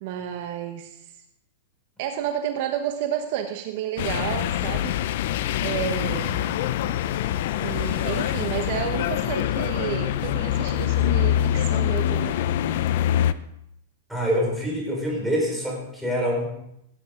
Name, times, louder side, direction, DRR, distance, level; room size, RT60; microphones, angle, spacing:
voice 1, 0.0-1.0 2.0-4.9 5.6-6.5 7.6-12.4, right 10 dB, 55° right, 6 dB, 1.1 m, -31 dB
sound 1, 4.0-13.3, left 11 dB, 60° left, 0.5 m, -24 dB
voice 2, 14.1-16.5, equal, ahead, -3 dB, 4.7 m, -25 dB
17.0 x 9.5 x 3.8 m, 0.79 s
hypercardioid pair, 135°, 0 cm